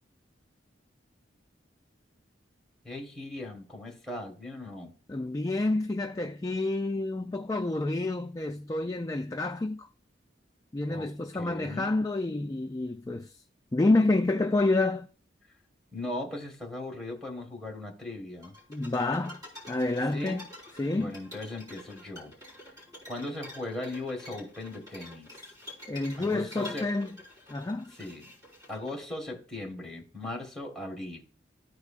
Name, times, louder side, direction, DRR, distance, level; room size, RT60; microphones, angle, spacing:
voice 1, 2.8-4.9 10.9-12.0 15.9-18.6 20.1-20.4 20.9-22.4 23.1-25.4 26.2-26.9 27.9-28.3 28.7-31.2, left 2 dB, 5° left, 1.7 m, -38 dB
voice 2, 5.1-9.9 10.7-13.4 13.7-15.1 18.7-20.5 20.8-21.1 25.9-27.1 27.5-27.9, left 2 dB, 20° left, 0.3 m, -28 dB
sound 1, 18.4-28.9, left 1 dB, 20° right, 4.1 m, -47 dB
13.5 x 4.7 x 2.4 m
head